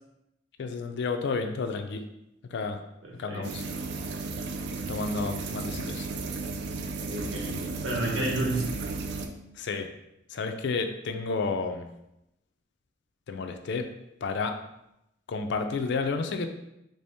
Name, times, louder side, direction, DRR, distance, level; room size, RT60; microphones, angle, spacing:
voice 1, 0.6-2.0 2.5-2.8 3.2-3.6 4.9-6.1 9.6-9.9 10.3-11.9 13.3-13.9 14.2-14.5 15.3-16.5, left 4 dB, 60° left, 6 dB, 0.4 m, -31 dB
voice 2, 3.0-3.5 4.7-4.8 5.1-5.4 7.0-8.7, right 1 dB, 90° right, -2 dB, 1.0 m, -32 dB
sound 1, 3.4-9.3, right 3 dB, 60° right, 0.4 m, -34 dB
3.2 x 2.7 x 3.4 m, 0.85 s
head